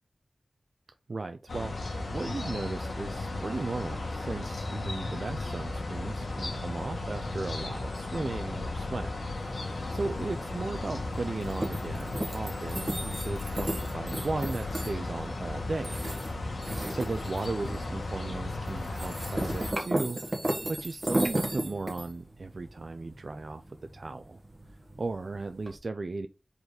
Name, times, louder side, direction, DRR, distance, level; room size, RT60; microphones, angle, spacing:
voice 1, 1.1-9.1 9.9-16.0 16.9-20.2 20.7-24.4 25.0-26.3, right 3 dB, 60° right, 0.5 m, -36 dB
sound 1, 1.5-19.7, left 2 dB, 85° left, 1.6 m, -35 dB
sound 2, 9.3-25.8, right 1 dB, 30° right, 1.6 m, -36 dB
4.8 x 4.0 x 5.0 m
wide cardioid pair, 80°, 0 cm